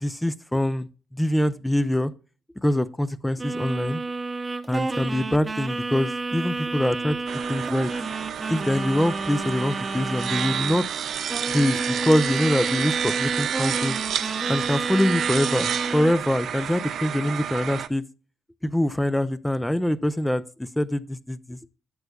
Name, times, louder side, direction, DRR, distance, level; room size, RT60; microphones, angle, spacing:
voice 1, 0.0-2.1 2.6-4.0 4.7-7.2 7.5-7.9 8.5-10.9 11.5-14.0 14.5-18.0 18.6-21.6, left 1 dB, 5° left, 0.5 m, -24 dB
sound 1, 3.4-10.9 11.3-16.1, right 3 dB, 25° right, 0.9 m, -31 dB
sound 2, 7.3-17.9, right 8 dB, 65° right, 0.6 m, -30 dB
10.5 x 6.6 x 2.3 m
cardioid pair, 90°, 0 cm